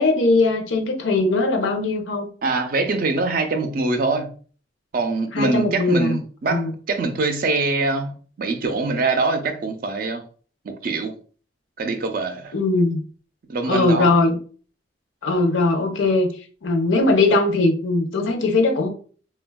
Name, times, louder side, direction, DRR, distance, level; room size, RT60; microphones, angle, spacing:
voice 1, 0.0-2.3 5.3-6.2 6.5-6.7 12.5-13.0 13.7-14.4 15.2-16.3 16.6-18.9, left 2 dB, 80° left, 0.6 m, -20 dB
voice 2, 2.4-4.3 4.9-10.2 10.6-11.1 11.8-12.5 13.5-14.1, right 3 dB, 45° right, 0.4 m, -24 dB
3.3 x 2.2 x 2.2 m
head